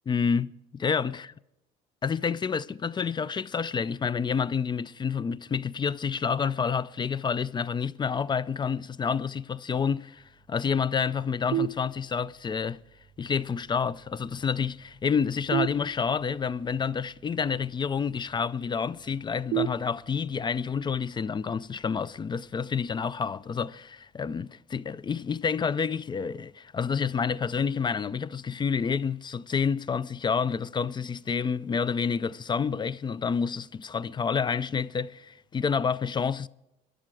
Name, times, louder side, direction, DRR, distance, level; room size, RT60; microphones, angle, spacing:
voice 1, 0.1-1.3 2.0-12.8 13.2-36.5, left 6 dB, 25° left, 0.4 m, -29 dB
sound 1, 11.5-12.5 15.5-16.5 19.5-20.5, right 11 dB, 75° right, 0.6 m, -32 dB
sound 2, 24.7-25.2 26.4-27.2, right 9 dB, 35° right, 6.6 m, -63 dB
20.0 x 11.5 x 4.7 m
cardioid pair, 110°, 17 cm